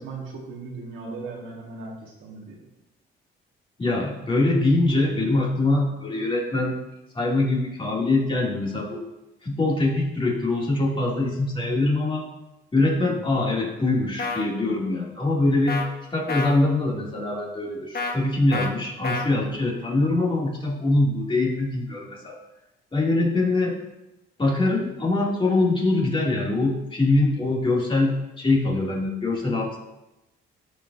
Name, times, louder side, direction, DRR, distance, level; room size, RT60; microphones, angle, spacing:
voice 1, 0.0-2.6 13.0-13.2, right 3 dB, 85° right, -2 dB, 1.9 m, -38 dB
voice 2, 3.8-6.8 7.1-9.1 9.4-12.3 12.7-15.8 16.1-22.4 22.9-23.8 24.4-29.8, left 2 dB, 25° left, -3 dB, 2.7 m, -23 dB
sound 1, 14.2-14.4 15.7-15.9 16.3-16.6 18.0-18.2 18.5-18.7 19.0-19.3, left 3 dB, 50° left, 1.1 m, -28 dB
14.0 x 5.1 x 2.8 m, 0.96 s
cardioid pair, 90°, 20 cm